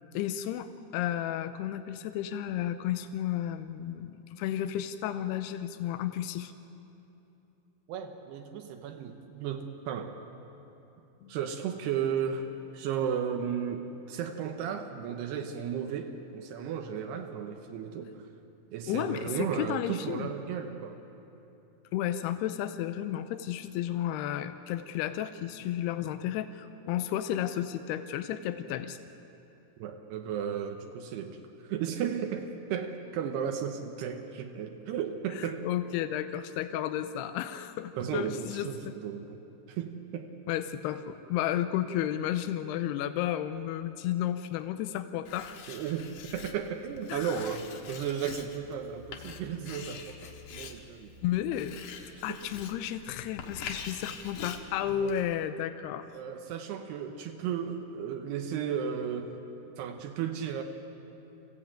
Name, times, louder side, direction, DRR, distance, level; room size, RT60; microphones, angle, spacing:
voice 1, 0.1-6.5 11.2-11.3 18.9-20.3 21.9-29.0 35.4-38.9 40.5-45.6 47.1-47.4 51.2-51.7 52.2-56.1, left 11 dB, 90° left, 10 dB, 2.7 m, -32 dB
voice 2, 7.9-10.2 11.3-18.3 18.7-21.0 29.8-35.7 38.0-39.4 39.7-40.4 45.7-51.1 52.1-52.5 54.8-55.1 56.1-59.4 59.8-60.6, right 8 dB, 85° right, 4 dB, 3.1 m, -34 dB
Writing, 45.3-55.4, left 6 dB, 65° left, 2.8 m, -45 dB
26.0 x 15.5 x 8.9 m, 2.9 s
omnidirectional pair, 4.6 m